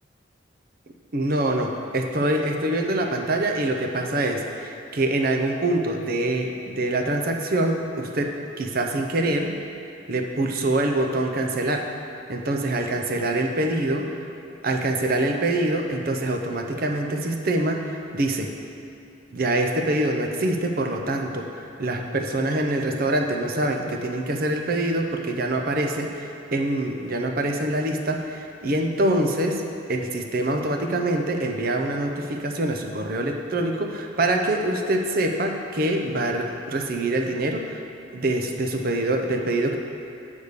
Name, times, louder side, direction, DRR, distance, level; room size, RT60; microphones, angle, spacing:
voice 1, 1.1-9.6 10.1-11.8 12.3-14.1 14.6-18.5 19.3-21.5 21.8-29.6 29.9-37.8 38.1-39.8, right 1 dB, 50° right, 3 dB, 0.6 m, -25 dB
7.9 x 3.5 x 6.6 m, 2.6 s
head